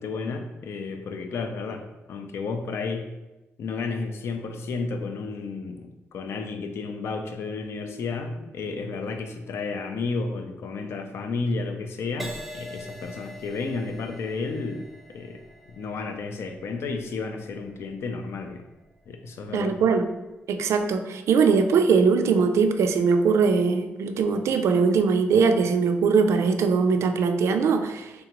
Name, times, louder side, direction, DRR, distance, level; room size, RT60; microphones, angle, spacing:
voice 1, 0.0-3.1 3.6-15.4 15.7-18.6 19.1-19.8, left 4 dB, 65° left, 6 dB, 0.4 m, -32 dB
Crash cymbal, 12.2-19.8 20.5-20.8, equal, 5° right, 0.4 m, -45 dB
voice 2, 19.5-20.1 20.5-28.2, right 5 dB, 85° right, 7 dB, 0.3 m, -21 dB
3.7 x 3.4 x 2.9 m, 1.0 s
wide cardioid pair, 165°, 5 cm